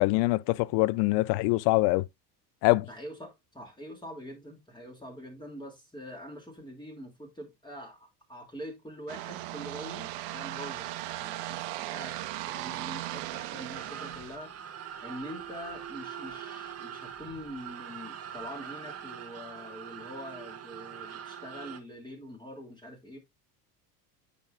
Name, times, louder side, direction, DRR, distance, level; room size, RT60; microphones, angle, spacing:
voice 1, 0.0-2.1 2.6-2.9, left 21 dB, 55° left, 0.5 m, -24 dB
voice 2, 2.9-12.1 12.4-23.2, equal, 10° left, 2.7 m, -44 dB
sound 1, 9.1-14.4, right 15 dB, 60° right, 1.0 m, -37 dB
sound 2, 13.7-21.8, right 8 dB, 30° right, 1.1 m, -43 dB
9.1 x 5.0 x 2.4 m
hypercardioid pair, 80°, 47 cm